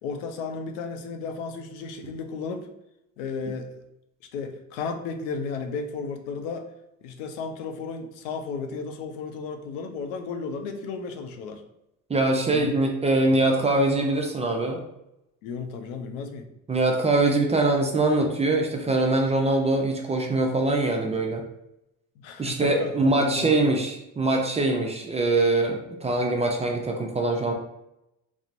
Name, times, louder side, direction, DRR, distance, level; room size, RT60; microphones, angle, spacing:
voice 1, 0.0-2.7 3.2-3.7 4.3-6.7 7.0-11.6 12.5-12.7 15.4-16.5 22.2-23.8, left 5 dB, 85° left, 6 dB, 0.5 m, -34 dB
voice 2, 12.1-14.8 16.7-21.4 22.4-27.5, right 2 dB, 20° right, 2 dB, 0.3 m, -23 dB
3.0 x 2.0 x 2.4 m, 0.86 s
supercardioid pair, 75°, 39 cm